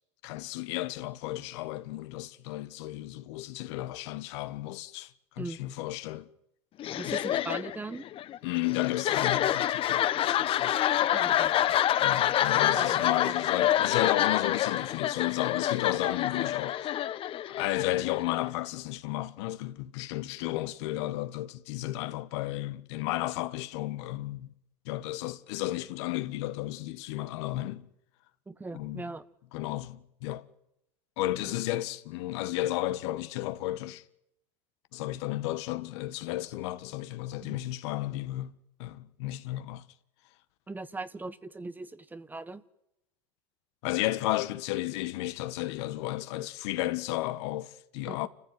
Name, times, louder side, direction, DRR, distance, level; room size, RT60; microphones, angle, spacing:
voice 1, 0.2-6.3 7.0-7.4 8.4-10.8 12.0-16.8 17.5-24.5 24.8-27.9 28.7-29.1 29.5-30.4 31.2-34.0 34.9-38.5 38.8-39.8 43.8-48.3, left 16 dB, 70° left, 1.5 m, -33 dB
sound 1, 6.8-18.5, left 11 dB, 40° left, 1.1 m, -27 dB
voice 2, 7.0-8.1 11.1-11.5 12.7-13.1 28.5-29.2 37.4-37.6 40.7-42.6 48.1-48.3, right 3 dB, 10° right, 1.1 m, -39 dB
28.0 x 15.0 x 9.5 m
supercardioid pair, 115°, 15 cm